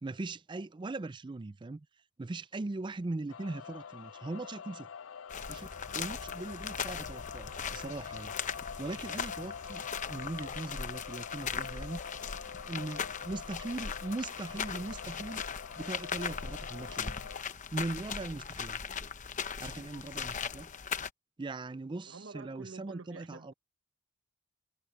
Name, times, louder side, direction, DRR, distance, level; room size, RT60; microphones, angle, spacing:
voice 1, 0.0-1.9 2.2-4.9 5.5-8.3 8.8-12.0 12.7-15.4 15.8-17.1 17.7-18.8 19.6-20.7 21.4-23.5, right 2 dB, 25° right, 0.4 m, -40 dB
sound 1, 3.3-17.4, left 7 dB, 85° left, 0.5 m, -46 dB
sound 2, 5.3-21.1, left 6 dB, 40° left, 0.9 m, -39 dB
voice 2, 22.1-23.5, right 3 dB, 90° right, 1.2 m, -48 dB
head